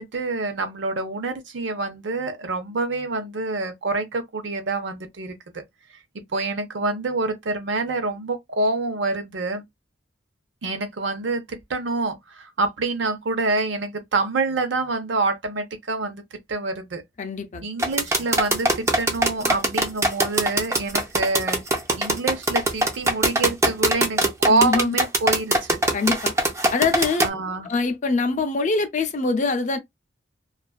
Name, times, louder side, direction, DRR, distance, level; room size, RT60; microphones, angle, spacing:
voice 1, 0.0-5.6 6.1-9.6 10.6-17.0 17.6-21.6 22.0-25.8 27.2-27.7, right 3 dB, 75° right, 0.7 m, -26 dB
voice 2, 17.2-17.6 24.5-24.9 25.9-26.3 26.7-27.3 27.6-29.8, left 4 dB, 40° left, 0.5 m, -23 dB
sound 1, 17.8-27.3, right 1 dB, 15° right, 0.5 m, -21 dB
2.4 x 2.3 x 2.3 m
head